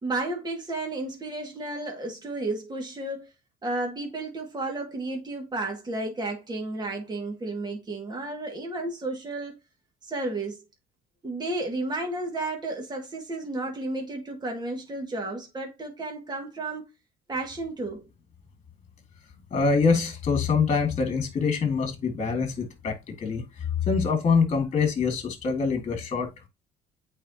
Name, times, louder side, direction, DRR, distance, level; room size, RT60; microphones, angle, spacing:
voice 1, 0.0-3.3 3.6-9.6 10.0-10.6 11.2-16.8 17.3-18.0, right 2 dB, 25° right, 2.1 m, -32 dB
voice 2, 19.5-23.4 23.9-26.5, left 5 dB, 35° left, 2.2 m, -25 dB
8.8 x 4.5 x 2.9 m
cardioid pair, 105°, 18 cm